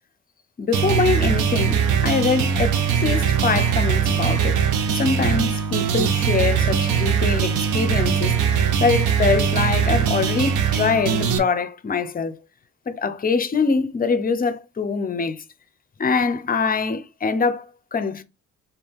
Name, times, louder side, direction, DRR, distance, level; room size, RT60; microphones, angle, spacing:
voice 1, 0.6-4.6 4.9-12.3 12.9-15.4 16.0-18.2, left 5 dB, 30° left, 0.6 m, -23 dB
sound 1, 0.7-11.4, right 7 dB, 85° right, 0.8 m, -21 dB
4.2 x 2.7 x 3.5 m
cardioid pair, 90°, 30 cm